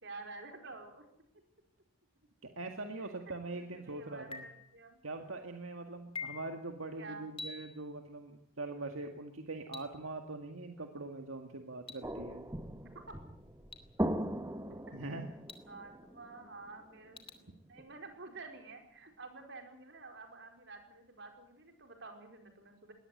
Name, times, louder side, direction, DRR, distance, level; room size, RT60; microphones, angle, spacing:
voice 1, 0.0-1.1 3.5-5.0 7.0-7.3 12.8-13.2 15.0-15.1 15.7-22.9, right 3 dB, 60° right, 4 dB, 4.9 m, -50 dB
voice 2, 2.4-4.5 5.0-12.5 14.9-15.3, right 2 dB, 80° right, 4 dB, 2.0 m, -42 dB
sound 1, 4.3-4.7 6.2-6.6 7.4-7.8 9.7-9.8 11.9-12.0 13.7-13.8 15.5-15.6 17.2-17.3, left 4 dB, 25° left, 2.5 m, -43 dB
sound 2, 12.0-17.2 17.8-17.9, right 1 dB, 15° right, 1.2 m, -39 dB
21.5 x 18.5 x 8.0 m, 0.71 s
head